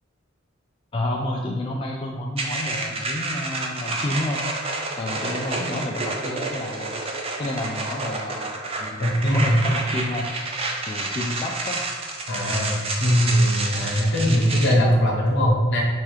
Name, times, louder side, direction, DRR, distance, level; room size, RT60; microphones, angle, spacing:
voice 1, 0.9-4.4 5.0-7.0 7.4-10.3 10.9-11.8, left 1 dB, 25° left, -1 dB, 0.3 m, -30 dB
sound 1, 2.4-14.7, right 2 dB, 30° right, 0.5 m, -29 dB
voice 2, 9.0-9.6 12.3-15.8, equal, 60° left, -3 dB, 1.2 m, -20 dB
3.5 x 2.9 x 4.8 m, 1.5 s
head